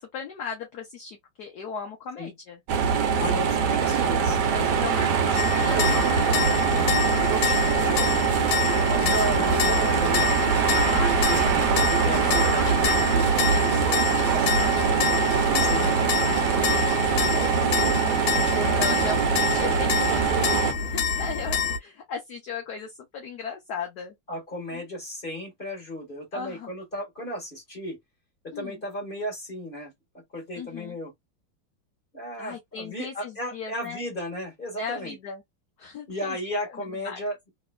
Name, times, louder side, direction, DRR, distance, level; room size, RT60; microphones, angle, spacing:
voice 1, 0.0-2.6 3.1-3.5 4.5-8.2 9.4-9.7 10.8-11.6 12.1-15.2 15.8-16.0 16.3-18.3 18.6-19.2 19.5-20.5 20.7-24.1 24.7-24.8 26.3-26.7 28.5-28.8 30.5-31.0 32.4-34.0 34.8-35.4 35.8-36.4 36.6-37.2, left 5 dB, 60° left, 1.1 m, -38 dB
sound 1, 2.7-20.7, right 6 dB, 65° right, 1.1 m, -23 dB
voice 2, 3.2-5.0 9.0-10.2 12.0-12.2 15.6-15.9 18.6-19.2 24.3-28.0 28.4-31.1 32.1-35.2 36.1-37.4, equal, 25° left, 1.5 m, -34 dB
sound 2, 5.3-21.8, left 6 dB, 80° left, 1.5 m, -28 dB
3.4 x 3.0 x 2.2 m
omnidirectional pair, 2.3 m